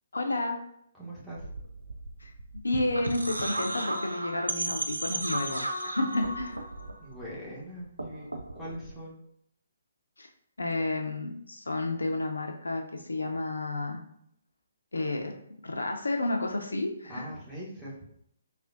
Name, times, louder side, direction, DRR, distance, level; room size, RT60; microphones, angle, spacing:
voice 1, 0.1-0.6 2.2-2.3 2.6-6.6 10.2-10.3 10.6-14.0 14.9-15.3 15.6-17.3, left 2 dB, 75° left, 3 dB, 0.4 m, -31 dB
voice 2, 0.9-1.5 7.0-9.2 17.1-17.9, equal, ahead, -9 dB, 0.9 m, -42 dB
sound 1, 1.4-7.6 7.9-8.9, right 1 dB, 80° right, 0.4 m, -35 dB
3.3 x 2.4 x 2.5 m, 0.71 s
figure-of-eight pair, 135°, 0 cm